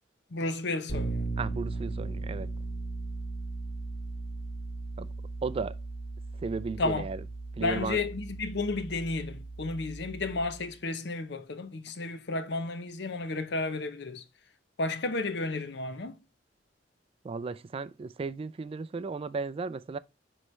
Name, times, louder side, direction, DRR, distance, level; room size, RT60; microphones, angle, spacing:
voice 1, 0.3-1.3 6.8-7.1 7.6-14.2 14.8-16.2, left 3 dB, 70° left, 0.8 m, -32 dB
Bass guitar, 0.9-10.7, right 3 dB, 45° left, 2.2 m, -37 dB
voice 2, 1.4-2.5 5.0-5.1 5.4-5.8 6.3-7.2 7.5-8.0 17.2-20.0, right 4 dB, 30° right, 0.3 m, -35 dB
9.6 x 3.2 x 3.2 m
head